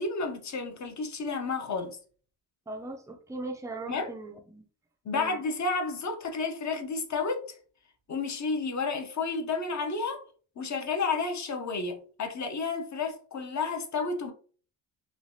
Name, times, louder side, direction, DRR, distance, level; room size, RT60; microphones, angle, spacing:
voice 1, 0.0-2.0 3.9-4.2 5.0-7.5 8.1-10.2 10.6-14.3, left 4 dB, 40° left, 0.6 m, -31 dB
voice 2, 2.7-4.6 5.1-5.4, right 2 dB, 10° right, 0.4 m, -39 dB
3.2 x 2.4 x 2.6 m
cardioid pair, 115°, 46 cm